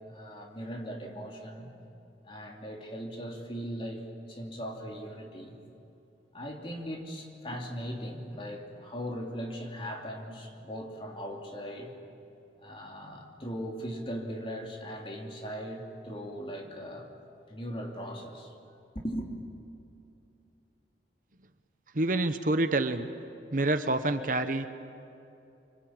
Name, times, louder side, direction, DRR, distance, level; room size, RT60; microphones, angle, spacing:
voice 1, 0.1-1.7 2.2-5.6 6.3-11.9 12.6-17.1 17.5-18.5 18.9-19.3, equal, 30° left, 0 dB, 3.0 m, -39 dB
voice 2, 21.9-23.1 23.5-24.7, right 2 dB, 50° right, 9 dB, 1.0 m, -27 dB
25.5 x 24.5 x 8.7 m, 2.8 s
head